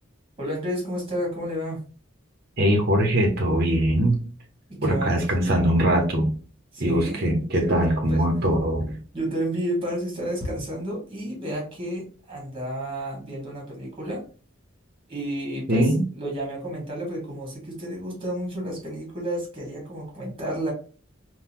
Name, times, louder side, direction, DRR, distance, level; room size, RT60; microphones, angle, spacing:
voice 1, 0.4-1.8 4.8-5.2 6.7-7.2 7.6-8.2 9.1-14.2 15.1-20.7, right 1 dB, 25° right, -2 dB, 1.6 m, -31 dB
voice 2, 2.6-4.2 4.8-6.3 6.8-9.0 15.7-16.0, right 1 dB, 50° right, 1 dB, 0.9 m, -21 dB
3.8 x 2.3 x 2.8 m, 0.38 s
head